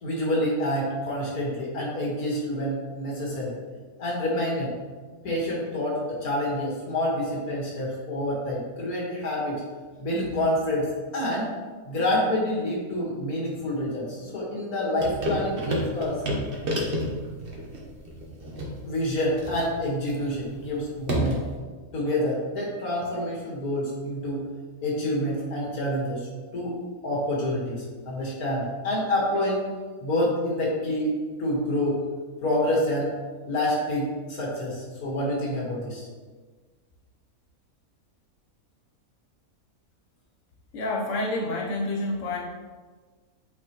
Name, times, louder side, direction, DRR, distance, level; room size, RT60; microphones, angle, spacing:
voice 1, 0.0-3.6 4.0-4.7 5.2-9.6 10.0-11.5 11.8-16.2 18.8-21.4 21.9-24.5 24.8-26.8 27.0-29.7 30.0-31.1 31.4-32.0 32.4-33.1 33.5-36.1, left 1 dB, 85° left, -4 dB, 2.2 m, -27 dB
Sink Drumming and Water, 15.0-21.6, equal, 40° right, 1.2 m, -31 dB
voice 2, 40.7-42.4, left 2 dB, 60° left, -2 dB, 1.1 m, -28 dB
8.4 x 4.3 x 3.0 m, 1.4 s
omnidirectional pair, 1.5 m